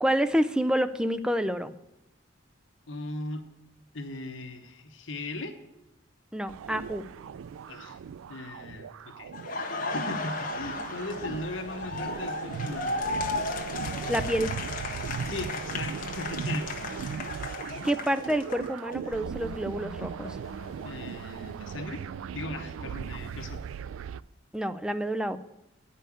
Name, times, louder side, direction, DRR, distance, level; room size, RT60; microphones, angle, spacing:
voice 1, 0.0-1.7 6.3-7.0 14.1-14.5 17.8-20.4 24.5-25.4, equal, 5° right, 10 dB, 0.4 m, -28 dB
voice 2, 2.9-3.4 3.9-5.6 7.7-8.0 8.3-9.3 9.6-13.0 15.2-17.1 20.8-22.0 22.3-23.6, left 2 dB, 70° left, 6 dB, 1.1 m, -38 dB
sound 1, 6.5-24.2, right 7 dB, 85° right, 0.3 m, -38 dB
Laughter, 9.3-19.2 19.5-21.5, left 3 dB, 40° left, 1.1 m, -35 dB
9.8 x 5.6 x 8.4 m, 0.91 s
head